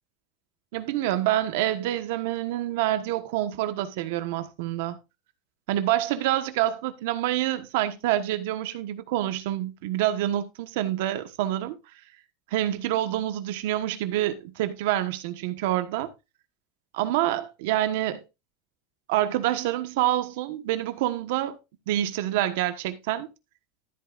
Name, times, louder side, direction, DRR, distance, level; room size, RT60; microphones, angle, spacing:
voice 1, 0.7-5.0 5.7-11.8 12.5-16.1 16.9-18.2 19.1-21.6 21.9-23.3, right 13 dB, 70° right, 1.2 m, -27 dB
13.5 x 8.6 x 2.5 m
cardioid pair, 175°, 0 cm